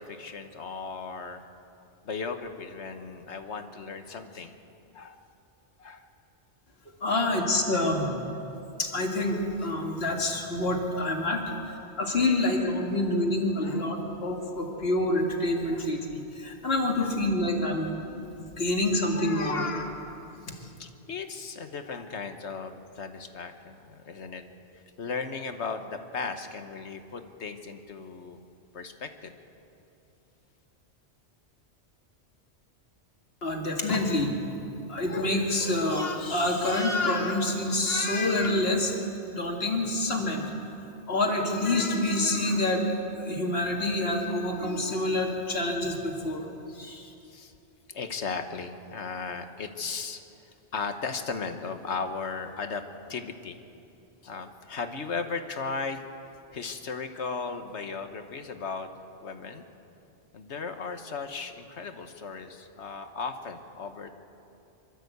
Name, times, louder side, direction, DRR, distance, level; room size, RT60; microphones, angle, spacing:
voice 1, 0.0-1.4 2.0-4.5 4.9-5.2 5.8-6.1 7.1-7.3 12.3-12.4 13.6-13.8 17.0-17.1 20.4-24.4 24.7-28.4 28.7-29.3 47.2-47.5 47.9-52.8 53.1-53.6 54.2-56.1 56.5-58.9 59.2-59.6 60.3-64.1, left 5 dB, 85° left, 7 dB, 1.5 m, -36 dB
voice 2, 7.0-8.2 8.8-17.9 18.4-19.9 20.5-20.6 33.4-34.3 34.9-38.9 39.3-40.4 41.1-42.9 43.2-46.5 46.7-47.1, left 2 dB, 65° left, 1 dB, 2.4 m, -27 dB
25.5 x 13.0 x 8.1 m, 2.8 s
omnidirectional pair, 1.1 m